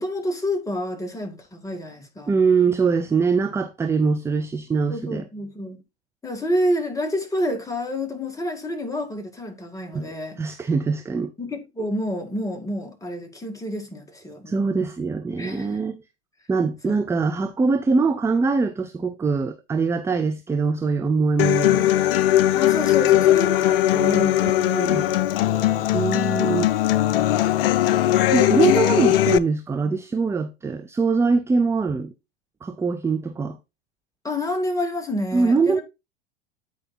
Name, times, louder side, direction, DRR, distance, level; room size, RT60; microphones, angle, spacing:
voice 1, 0.0-2.3 4.9-5.8 6.2-10.4 11.4-14.6 15.4-15.8 16.9-17.0 22.5-26.0 27.5-28.8 29.8-29.9 34.2-35.8, left 1 dB, 10° left, 2.0 m, -29 dB
voice 2, 2.3-5.2 9.9-11.3 14.5-16.0 16.5-21.9 24.4-25.1 25.9-26.7 28.3-32.1 32.6-33.6 35.3-35.8, right 4 dB, 10° right, 0.4 m, -23 dB
Human voice / Acoustic guitar, 21.4-29.4, left 13 dB, 55° left, 0.5 m, -19 dB
8.9 x 4.7 x 4.2 m
figure-of-eight pair, 85°, 33 cm